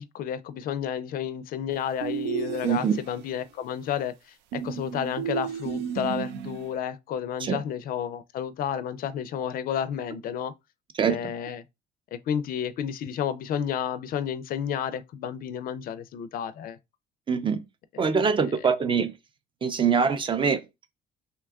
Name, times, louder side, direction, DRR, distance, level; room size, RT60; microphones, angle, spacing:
voice 1, 0.0-4.1 4.5-10.5 11.0-11.6 12.1-16.8 17.9-18.1, left 9 dB, 60° left, 0.4 m, -31 dB
sound 1, 2.0-3.3 4.5-6.7, right 9 dB, 85° right, 0.4 m, -33 dB
voice 2, 2.6-3.0 7.4-7.6 11.0-11.2 17.3-17.6 18.0-19.1 19.6-20.6, right 6 dB, 30° right, 0.5 m, -23 dB
2.8 x 2.3 x 3.4 m
cardioid pair, 110°, 17 cm